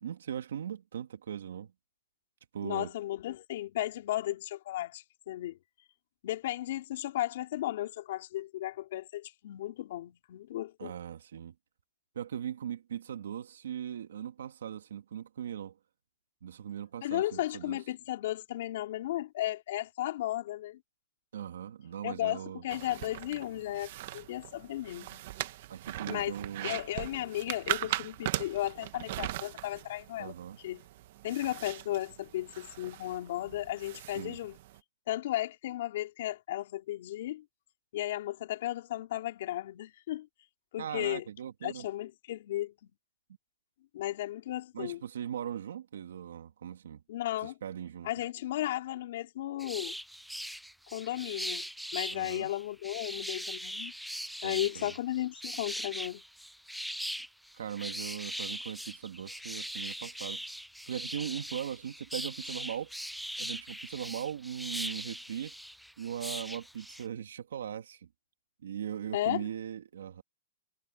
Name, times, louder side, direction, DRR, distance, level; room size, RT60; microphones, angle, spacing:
voice 1, 0.0-1.7 2.5-2.9 10.8-11.5 12.1-15.8 16.4-17.8 21.3-22.6 25.7-26.8 30.2-30.6 34.1-34.4 40.8-41.9 44.7-47.0 47.4-48.1 52.1-52.5 54.4-54.9 57.5-60.4 60.9-62.9 63.4-65.5 66.0-68.1 68.6-70.2, right 9 dB, 85° right, 2.3 m, -39 dB
voice 2, 2.6-5.6 6.2-10.9 17.0-20.8 22.0-25.2 26.1-26.3 26.6-30.4 30.6-30.8 31.2-34.6 35.1-37.4 37.9-40.3 40.7-41.2 41.6-42.9 43.9-45.0 47.1-47.6 48.0-50.0 50.9-51.7 51.9-53.9 54.4-56.2 69.1-69.5, left 14 dB, 45° left, 4.4 m, -35 dB
sound 1, 22.7-34.8, right 15 dB, 40° right, 1.3 m, -40 dB
sound 2, 49.6-67.0, equal, ahead, 0.4 m, -40 dB
hypercardioid pair, 180°, 0 cm